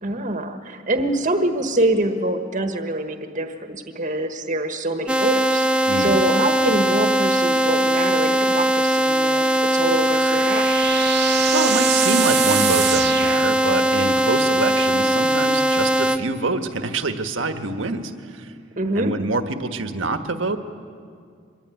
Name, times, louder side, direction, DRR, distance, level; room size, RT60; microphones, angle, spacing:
voice 1, 0.0-11.0 18.8-19.2, right 1 dB, 40° right, 6 dB, 1.4 m, -25 dB
sound 1, 5.1-16.2, right 1 dB, 5° right, 0.7 m, -20 dB
sound 2, 9.6-14.1, right 11 dB, 60° right, 0.9 m, -26 dB
voice 2, 11.1-18.5 18.9-20.6, right 3 dB, 75° right, 7 dB, 1.5 m, -26 dB
24.5 x 21.0 x 9.2 m, 2.2 s
head